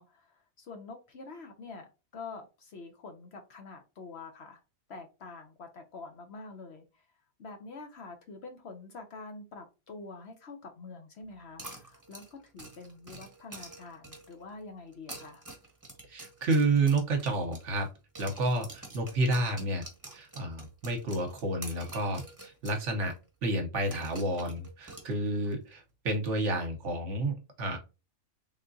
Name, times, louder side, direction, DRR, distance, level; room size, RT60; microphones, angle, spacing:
voice 1, 0.0-4.6 4.9-7.0 7.4-15.4, left 3 dB, 55° left, 5 dB, 0.9 m, -46 dB
sound 1, 11.6-14.4 14.9-17.9 18.1-22.8 23.1-23.2 23.9-25.5, right 2 dB, 15° right, 1.0 m, -47 dB
voice 2, 16.1-17.9 18.2-19.8 20.1-23.1 23.4-27.8, right 2 dB, 60° right, 4 dB, 1.2 m, -30 dB
3.7 x 3.5 x 2.6 m, 0.29 s
omnidirectional pair, 1.5 m